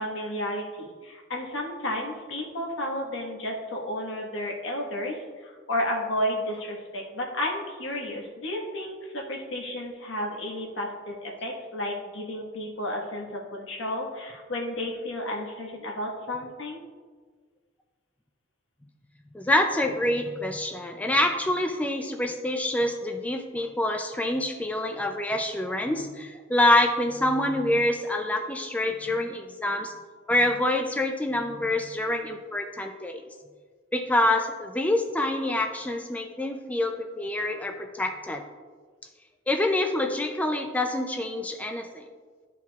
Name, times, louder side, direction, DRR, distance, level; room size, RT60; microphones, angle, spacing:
voice 1, 0.0-16.8, left 1 dB, 75° left, -1 dB, 1.4 m, -32 dB
voice 2, 19.3-29.9 30.3-33.2 33.9-38.4 39.5-42.0, left 1 dB, 10° left, 4 dB, 0.3 m, -26 dB
12.0 x 4.6 x 2.3 m, 1.5 s
head